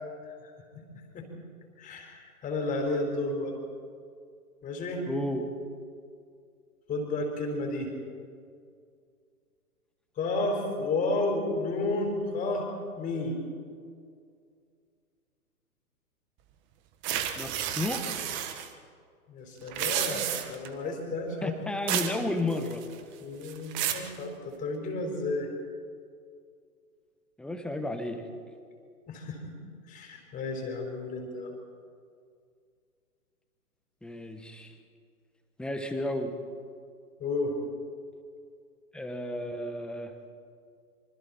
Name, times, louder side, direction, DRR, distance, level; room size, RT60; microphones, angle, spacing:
voice 1, 1.8-3.5 4.6-5.0 6.9-7.9 10.2-12.7 12.9-13.4 19.3-21.5 23.2-25.5 29.1-29.4 29.9-31.5 37.2-37.5, left 2 dB, 15° left, 2 dB, 4.6 m, -32 dB
voice 2, 5.1-5.5 17.3-18.1 21.4-22.8 27.4-28.2 34.0-34.7 35.6-36.3 38.9-40.1, left 1 dB, ahead, 6 dB, 1.3 m, -32 dB
sound 1, 17.0-18.7 19.6-20.7 21.9-22.2 22.5-23.0 23.4-24.1, right 10 dB, 25° right, 1.5 m, -31 dB
26.0 x 24.5 x 4.4 m, 2.3 s
figure-of-eight pair, 125°, 46 cm